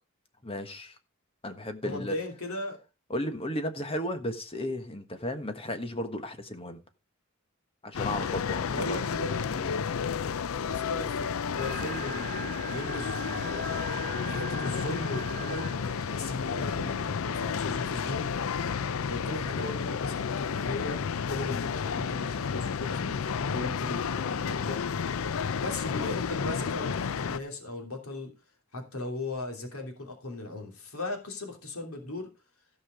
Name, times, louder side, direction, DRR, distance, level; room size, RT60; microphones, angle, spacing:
voice 1, 0.4-1.0 1.4-2.1 3.1-6.8 7.8-9.0 9.5-9.7, left 1 dB, 25° left, 1.4 m, -34 dB
voice 2, 1.8-2.8 8.0-8.4 8.7-9.6 10.7-13.9 14.3-18.3 19.1-24.8 25.6-28.3 28.7-32.3, left 2 dB, 90° left, 3.1 m, -37 dB
sound 1, 7.9-27.4, left 6 dB, 75° left, 0.5 m, -31 dB
sound 2, 11.6-19.0, right 4 dB, 45° right, 2.1 m, -42 dB
16.0 x 5.6 x 5.0 m
head